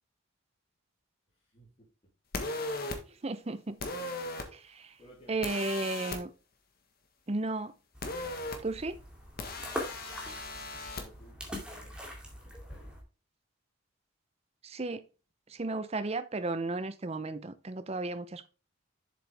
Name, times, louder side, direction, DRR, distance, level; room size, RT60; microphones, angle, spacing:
voice 1, 1.5-1.9 3.8-4.2 5.0-5.7 9.6-10.1 11.0-12.0 12.4-13.0, equal, 30° left, 3.0 m, -57 dB
sound 1, 2.3-3.0 3.8-4.5 5.4-6.2 8.0-8.6 9.4-11.0, left 2 dB, 50° left, 1.4 m, -37 dB
voice 2, 3.2-3.8 4.5-4.9 5.3-6.3 7.3-7.7 8.6-9.0 14.6-15.0 15.5-18.5, right 2 dB, 30° right, 0.6 m, -34 dB
sound 2, 7.9-13.0, left 1 dB, 5° right, 2.1 m, -43 dB
7.5 x 7.1 x 3.4 m
head